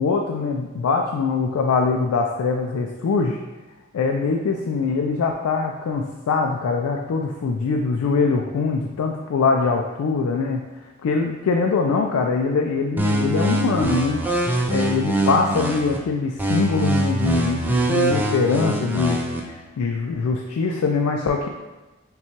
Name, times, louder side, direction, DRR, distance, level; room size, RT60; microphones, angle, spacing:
voice 1, 0.0-3.4 3.9-10.6 11.0-14.2 14.7-19.2 19.4-21.5, left 4 dB, 80° left, 2 dB, 0.3 m, -22 dB
sound 1, 13.0-16.0 16.4-19.4, right 2 dB, 10° right, 0.3 m, -23 dB
5.6 x 2.3 x 2.8 m, 1.2 s
head